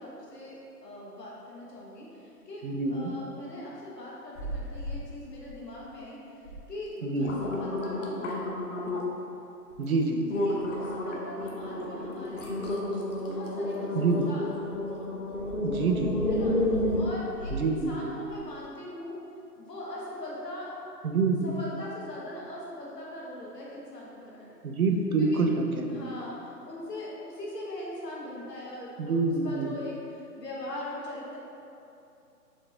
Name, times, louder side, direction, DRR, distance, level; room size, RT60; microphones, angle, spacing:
voice 1, 0.0-8.9 10.3-12.6 13.3-14.7 16.3-19.2 19.5-20.7 21.4-24.6 25.2-25.4 25.9-31.4, left 1 dB, 80° left, -5 dB, 1.3 m, -41 dB
voice 2, 2.6-3.1 7.0-7.3 9.8-10.2 13.9-14.3 15.6-16.1 17.5-18.1 21.0-21.5 24.6-26.1 29.0-29.7, right 3 dB, 60° right, 3 dB, 0.5 m, -27 dB
sound 1, 4.3-5.0 5.4-5.9 6.4-6.6 7.0-9.2 9.7-9.9 10.3-17.8 18.3-18.4, left 1 dB, 50° left, 0.7 m, -31 dB
4.3 x 3.1 x 3.4 m, 2.7 s
hypercardioid pair, 160°, 49 cm